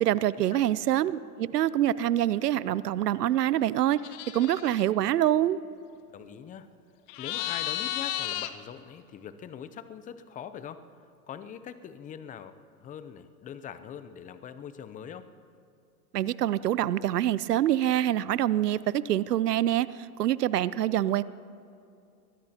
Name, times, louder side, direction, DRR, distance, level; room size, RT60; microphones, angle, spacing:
voice 1, 0.0-4.0 4.3-5.6 16.1-19.9 20.2-21.2, right 12 dB, 90° right, 18 dB, 0.6 m, -25 dB
sound 1, 4.0-4.8 7.1-8.5, left 13 dB, 50° left, 1.0 m, -33 dB
voice 2, 6.1-6.7 7.2-10.8 11.3-15.3, left 8 dB, 15° left, 12 dB, 0.6 m, -42 dB
24.0 x 18.5 x 2.9 m, 2.6 s
hypercardioid pair, 115°, 46 cm